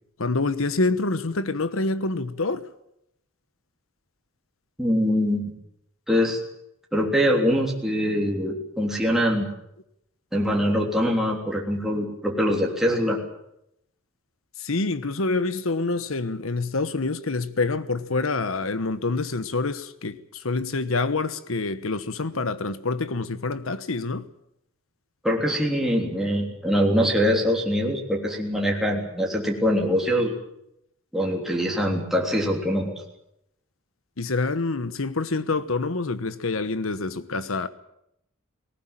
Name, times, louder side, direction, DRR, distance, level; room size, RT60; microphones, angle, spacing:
voice 1, 0.2-2.7 14.6-24.3 34.2-37.7, left 3 dB, 90° left, 1.2 m, -26 dB
voice 2, 4.8-5.5 6.1-6.4 6.9-9.5 10.3-13.2 25.2-30.3 31.1-32.9, equal, ahead, 3.4 m, -23 dB
19.5 x 19.5 x 9.0 m
head